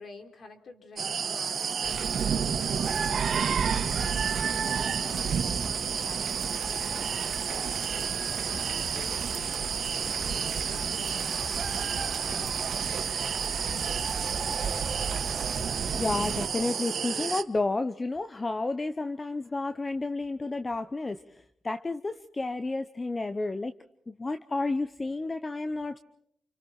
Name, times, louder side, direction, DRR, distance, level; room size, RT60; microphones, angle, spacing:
voice 1, 0.0-13.1, left 3 dB, 50° left, 3.8 m, -49 dB
sound 1, 1.0-17.4, right 7 dB, 55° right, 1.3 m, -31 dB
sound 2, 1.8-16.5, right 7 dB, 75° right, 2.4 m, -34 dB
sound 3, 8.5-15.3, left 3 dB, 75° left, 6.5 m, -45 dB
voice 2, 15.6-21.2 21.6-23.7 24.1-26.0, left 2 dB, 20° left, 0.8 m, -31 dB
29.5 x 29.0 x 4.5 m
wide cardioid pair, 135°, 0 cm